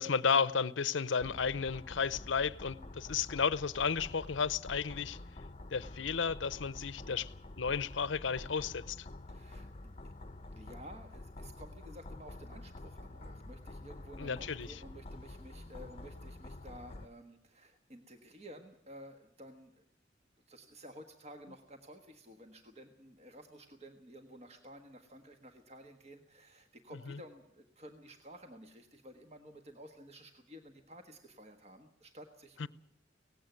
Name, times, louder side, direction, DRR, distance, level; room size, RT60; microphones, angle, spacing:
voice 1, 0.0-5.2 5.7-7.3 7.6-9.1 14.2-14.8 27.1-27.2 32.6-32.7, left 5 dB, 80° left, 0.7 m, -33 dB
sound 1, 1.2-17.1, left 2 dB, 35° left, 0.8 m, -48 dB
voice 2, 9.3-19.8 20.5-32.7, equal, 35° right, 1.5 m, -53 dB
18.0 x 16.0 x 9.4 m
head